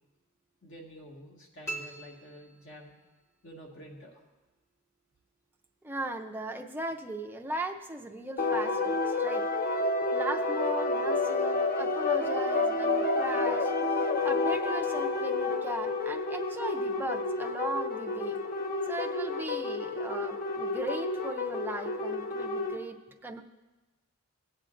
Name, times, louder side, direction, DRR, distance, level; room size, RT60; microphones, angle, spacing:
voice 1, 0.6-3.0 3.4-4.1, equal, 60° left, -2 dB, 1.8 m, -49 dB
sound 1, 1.6-3.2, right 2 dB, 15° left, 1.1 m, -42 dB
voice 2, 5.8-9.5 10.1-13.7 14.2-18.4 18.9-23.0 23.2-23.4, right 2 dB, 10° right, 3 dB, 0.5 m, -38 dB
sound 2, 8.4-22.8, left 3 dB, 40° left, 0.7 m, -30 dB
18.0 x 7.8 x 2.5 m, 1.1 s
head